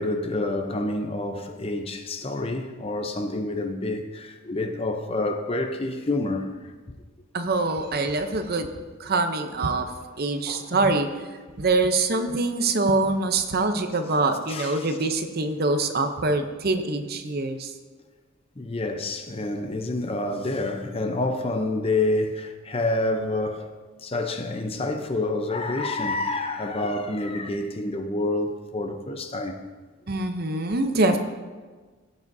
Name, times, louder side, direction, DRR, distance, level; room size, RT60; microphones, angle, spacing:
voice 1, 0.0-6.5 9.4-9.5 10.5-10.7 14.5-15.0 18.6-23.7 24.0-29.6, left 2 dB, 25° left, 0.6 m, -28 dB
voice 2, 7.3-8.7 9.0-9.9 10.2-11.1 11.6-17.7 30.1-31.2, right 3 dB, 45° right, 0.7 m, -24 dB
16.5 x 8.4 x 2.7 m
head